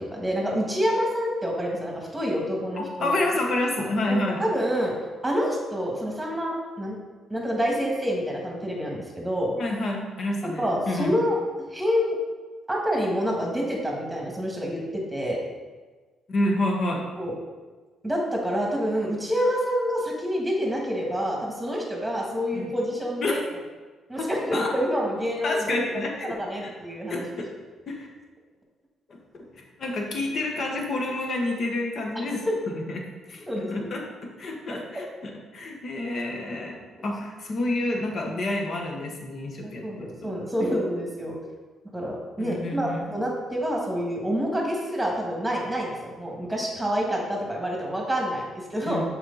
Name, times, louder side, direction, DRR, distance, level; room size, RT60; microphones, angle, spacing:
voice 1, 0.0-3.1 4.1-5.0 5.2-7.0 7.3-9.6 10.4-11.4 11.7-12.2 12.7-15.4 17.2-17.4 18.0-23.4 24.1-25.9 26.2-27.2 32.5-32.6 33.5-34.0 34.7-34.8 39.6-41.4 41.9-49.0, equal, 5° right, -1 dB, 1.7 m, -27 dB
voice 2, 3.0-4.4 9.6-11.2 16.3-17.0 22.5-22.7 23.2-23.4 24.2-24.7 25.4-26.3 26.6-26.7 27.1-27.5 27.9-28.1 29.6-33.0 33.3-36.8 37.0-40.3 40.6-40.7 42.4-43.0 48.9-49.0, left 2 dB, 55° left, 1 dB, 1.2 m, -29 dB
6.4 x 4.5 x 4.0 m, 1.3 s
cardioid pair, 90°, 0 cm